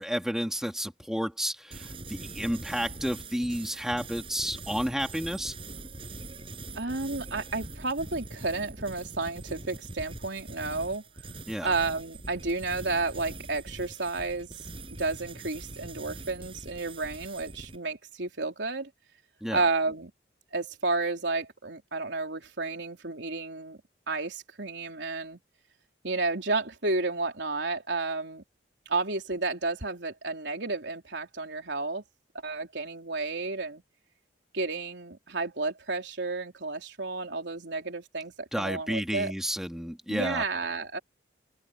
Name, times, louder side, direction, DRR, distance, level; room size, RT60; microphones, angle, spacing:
voice 1, 0.0-5.5 11.5-11.7 19.4-19.6 38.5-40.4, equal, 5° right, 2.1 m, -31 dB
sound 1, 1.7-17.8, right 2 dB, 30° right, 7.8 m, -43 dB
voice 2, 6.7-11.0 11.6-14.5 14.9-18.9 19.5-20.1 20.5-23.8 24.1-25.4 26.0-28.4 28.9-32.0 32.4-33.8 34.5-39.3 40.1-41.0, right 3 dB, 75° right, 3.6 m, -31 dB
open air
head